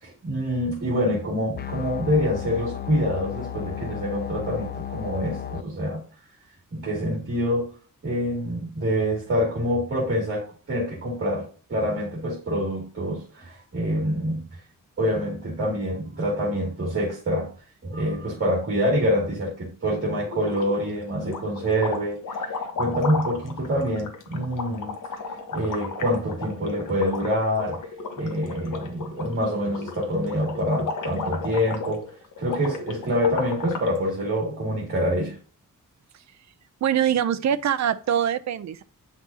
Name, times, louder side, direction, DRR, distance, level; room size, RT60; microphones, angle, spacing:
voice 1, 0.0-6.0 6.7-7.7 8.0-14.6 15.0-17.5 17.8-22.5 22.8-24.9 25.5-27.8 28.2-32.0 32.4-35.4, equal, 35° right, -4 dB, 2.4 m, -26 dB
sound 1, 1.5-5.6, left 10 dB, 30° left, 0.4 m, -34 dB
sound 2, 20.3-20.9 21.2-34.0, left 4 dB, 65° left, 1.4 m, -34 dB
voice 2, 36.8-38.8, right 9 dB, 55° right, 12 dB, 0.5 m, -23 dB
8.6 x 5.9 x 2.8 m, 0.41 s
wide cardioid pair, 170°, 34 cm